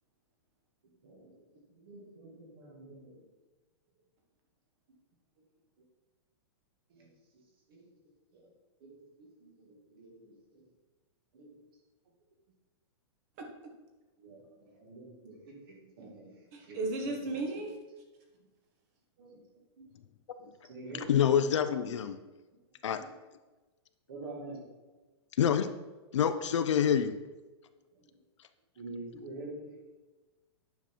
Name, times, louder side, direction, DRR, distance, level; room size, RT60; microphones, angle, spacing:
voice 1, 1.8-3.1 7.0-7.1 7.7-7.9 8.8-9.0 9.4-10.3 11.3-11.5 14.2-14.4 14.8-16.4 16.7-16.8 17.1-17.2 19.2-19.4 20.4-21.2 22.9-23.1 24.1-24.7 28.8-29.7, right 2 dB, 50° right, 0 dB, 2.3 m, -46 dB
voice 2, 13.4-13.7 16.0-16.1 16.5-17.7, right 2 dB, 35° right, 3 dB, 1.4 m, -36 dB
voice 3, 20.9-22.2 22.8-23.0 25.4-25.7 26.1-27.2, left 8 dB, 85° left, 9 dB, 0.7 m, -27 dB
9.2 x 5.9 x 4.6 m, 1.2 s
hypercardioid pair, 170°, 15 cm